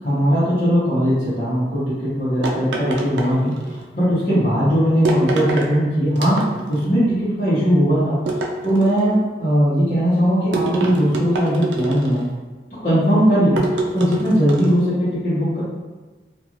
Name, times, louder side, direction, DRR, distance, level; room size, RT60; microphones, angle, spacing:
voice 1, 0.0-6.4 6.7-8.2 8.6-12.3 12.8-13.6 13.9-15.6, equal, 40° left, -13 dB, 1.0 m, -19 dB
sound 1, 2.4-3.8 5.1-5.7 6.2-6.8 8.3-9.2 10.5-12.3 13.6-14.8, right 2 dB, 90° right, 0.4 m, -25 dB
3.0 x 2.4 x 2.5 m, 1.2 s
head